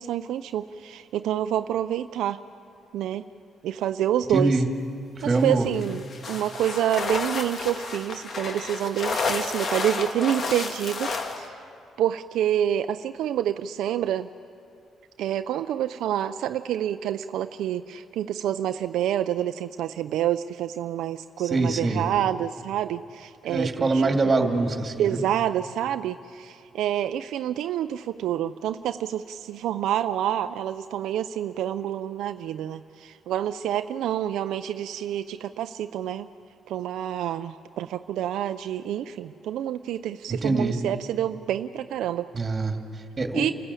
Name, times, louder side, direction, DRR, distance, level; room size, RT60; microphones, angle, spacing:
voice 1, 0.0-2.4 2.9-3.3 3.6-4.6 5.2-6.0 6.3-11.1 11.4-11.6 12.0-14.3 15.2-24.1 24.4-24.5 25.0-36.3 36.7-42.3 43.3-43.5, right 11 dB, 85° right, 10 dB, 0.4 m, -28 dB
voice 2, 4.3-4.7 5.2-5.7 21.4-22.1 23.5-25.2 40.3-40.8 42.3-43.5, right 3 dB, 30° right, 4 dB, 2.4 m, -24 dB
sound 1, 5.7-11.5, left 3 dB, 50° left, 1.8 m, -31 dB
28.5 x 14.5 x 8.4 m, 2.5 s
cardioid pair, 90°, 0 cm